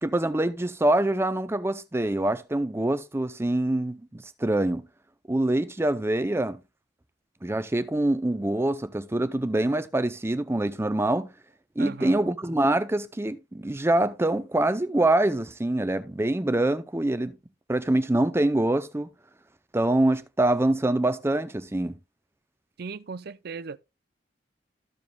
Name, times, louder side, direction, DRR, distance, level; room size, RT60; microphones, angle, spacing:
voice 1, 0.0-4.8 5.3-6.6 7.4-11.3 11.8-17.4 17.7-19.1 19.7-22.0, right 1 dB, 15° right, 0.5 m, -25 dB
voice 2, 11.8-12.2 22.8-23.8, right 5 dB, 60° right, 0.5 m, -37 dB
14.0 x 7.1 x 2.3 m
head